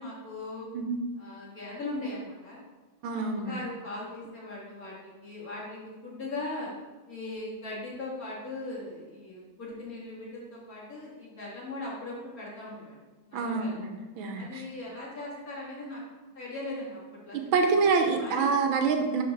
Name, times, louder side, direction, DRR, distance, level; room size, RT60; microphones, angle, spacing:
voice 1, 0.0-0.7 1.2-2.6 3.0-6.7 7.1-13.0 13.3-13.8 14.4-16.0 16.4-17.8 18.2-18.6, left 2 dB, 45° left, -5 dB, 1.9 m, -39 dB
voice 2, 3.0-3.6 13.3-14.6 17.3-19.2, right 4 dB, 75° right, 4 dB, 1.4 m, -27 dB
10.5 x 3.8 x 3.2 m, 1.3 s
omnidirectional pair, 2.4 m